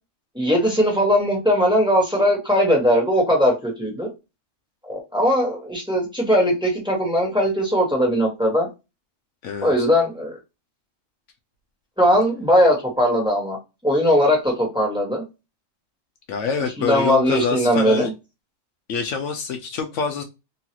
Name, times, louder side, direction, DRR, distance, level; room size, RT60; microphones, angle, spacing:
voice 1, 0.3-4.1 4.9-8.7 9.6-10.4 12.0-13.6 13.8-15.2 16.8-18.1, equal, 5° right, -2 dB, 1.3 m, -19 dB
voice 2, 16.3-18.1 18.9-20.2, left 5 dB, 70° left, 5 dB, 0.9 m, -25 dB
3.1 x 2.4 x 2.8 m, 0.25 s
omnidirectional pair, 1.3 m